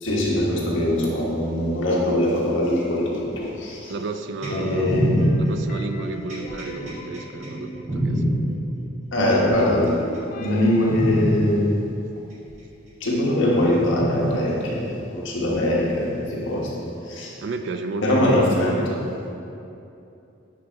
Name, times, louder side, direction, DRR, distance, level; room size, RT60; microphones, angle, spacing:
voice 1, 0.0-3.9 4.5-5.2 9.1-9.9 10.4-11.7 13.0-17.3 18.0-18.7, left 1 dB, 70° left, -4 dB, 1.2 m, -22 dB
voice 2, 3.9-5.0 5.4-8.3 17.4-19.1, right 3 dB, 60° right, 7 dB, 0.3 m, -32 dB
sound 1, 4.4-8.4 9.3-10.0 10.4-10.6 10.9-11.4 12.5-12.6 13.9-14.4 15.5-15.6, equal, 35° right, 1.2 m, -25 dB
sound 2, 4.5-8.7 9.8-11.7, equal, 45° left, 0.4 m, -38 dB
9.0 x 3.3 x 3.9 m, 2.8 s
head